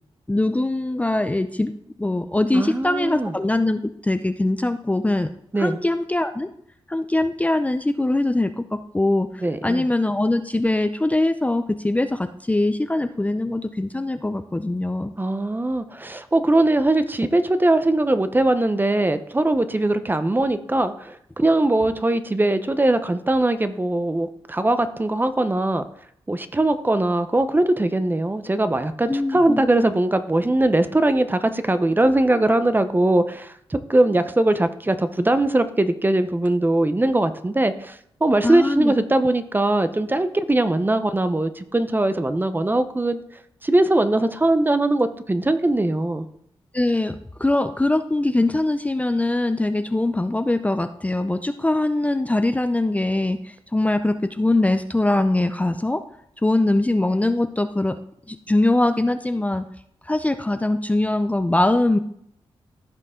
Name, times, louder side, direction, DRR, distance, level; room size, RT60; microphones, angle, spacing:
voice 1, 0.3-1.7 2.0-5.3 5.6-6.5 6.9-8.6 8.9-9.3 9.6-15.1 29.1-29.6 38.4-38.9 46.7-56.0 56.4-58.0 58.3-59.6 60.1-62.0, left 2 dB, 15° left, 8 dB, 0.5 m, -22 dB
voice 2, 2.5-3.3 5.5-5.8 9.4-9.8 15.2-25.9 26.3-43.2 43.6-46.3, right 2 dB, 20° right, 10 dB, 0.7 m, -21 dB
15.0 x 5.3 x 3.8 m, 0.70 s
cardioid pair, 65°, 10 cm